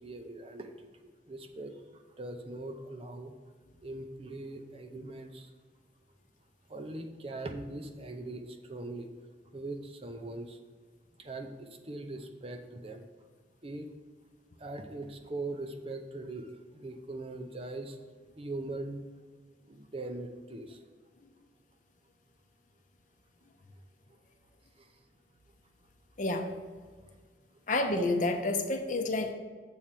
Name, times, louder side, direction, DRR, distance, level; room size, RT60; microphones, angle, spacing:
voice 1, 0.0-3.3 3.8-5.5 6.7-9.1 9.5-10.6 11.2-13.0 13.6-13.9 14.6-18.0 18.4-19.1 19.7-20.8 24.8-24.9, right 2 dB, 30° right, 5 dB, 0.6 m, -41 dB
voice 2, 27.7-29.3, left 2 dB, 40° left, 5 dB, 0.7 m, -29 dB
7.4 x 4.3 x 6.7 m, 1.5 s
head